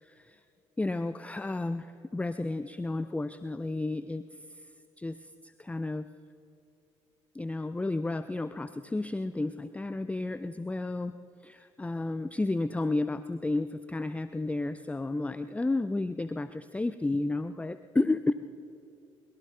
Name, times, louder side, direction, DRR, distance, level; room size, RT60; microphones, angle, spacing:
voice 1, 0.0-0.4 0.8-4.2 5.0-5.2 5.4-6.1 7.3-11.1 11.4-18.4, left 2 dB, 10° left, 12 dB, 0.4 m, -32 dB
23.0 x 22.0 x 2.3 m, 2.8 s
figure-of-eight pair, 45°, 15 cm